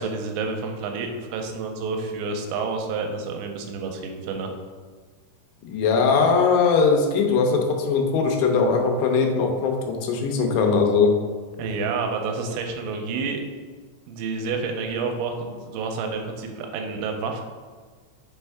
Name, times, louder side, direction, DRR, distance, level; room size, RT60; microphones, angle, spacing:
voice 1, 0.0-4.5 11.6-13.4 14.1-17.4, right 4 dB, 85° right, 3 dB, 2.9 m, -29 dB
voice 2, 5.6-11.1, left 5 dB, 90° left, 2 dB, 3.2 m, -20 dB
6.8 x 4.4 x 3.5 m, 1.4 s
omnidirectional pair, 5.1 m